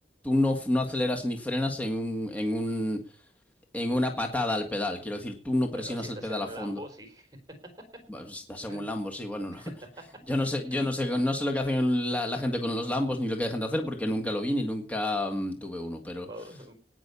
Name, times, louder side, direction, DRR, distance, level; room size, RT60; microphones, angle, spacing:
voice 1, 0.2-3.0 3.7-6.8 8.1-9.7 10.3-16.3, left 1 dB, 10° left, 3 dB, 1.7 m, -29 dB
voice 2, 5.7-7.4 8.6-8.9 9.5-9.9 16.2-16.7, right 1 dB, 20° right, 7 dB, 3.9 m, -44 dB
18.0 x 6.2 x 6.9 m, 0.39 s
head